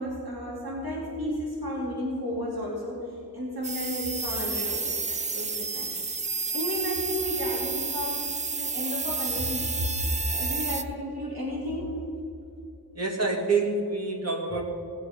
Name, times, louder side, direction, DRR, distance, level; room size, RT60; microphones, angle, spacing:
voice 1, 0.0-5.9 6.2-8.3 8.6-12.0, equal, 70° right, -5 dB, 3.4 m, -33 dB
sound 1, 3.6-10.8, right 3 dB, 20° right, 0.4 m, -31 dB
voice 2, 13.0-14.6, right 3 dB, 40° right, 0 dB, 2.2 m, -27 dB
18.0 x 7.3 x 5.3 m, 2.6 s
wide cardioid pair, 55°, 38 cm